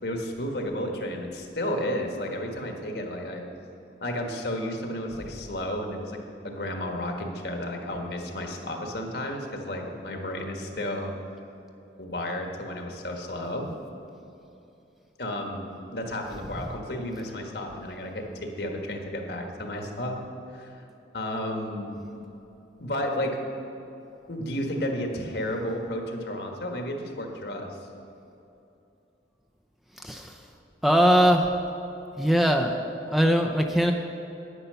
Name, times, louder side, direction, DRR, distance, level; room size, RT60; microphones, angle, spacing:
voice 1, 0.0-3.4 4.0-6.2 6.4-11.1 12.0-13.7 15.2-20.2 20.5-20.8 21.1-22.2 22.8-23.4 24.3-27.7, left 1 dB, 65° left, 3 dB, 1.5 m, -32 dB
voice 2, 30.8-31.5 32.2-32.8 33.1-33.9, equal, ahead, 2 dB, 0.5 m, -20 dB
9.9 x 9.5 x 6.8 m, 2.8 s
head